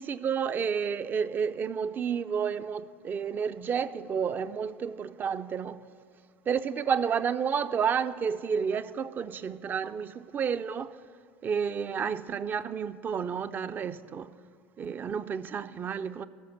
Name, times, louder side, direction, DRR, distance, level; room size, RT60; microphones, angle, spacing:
voice 1, 0.0-5.8 6.5-10.9 11.4-14.4 14.8-16.3, right 7 dB, 30° right, 0.5 m, -30 dB
13.0 x 6.9 x 9.7 m
hypercardioid pair, 75°, 6 cm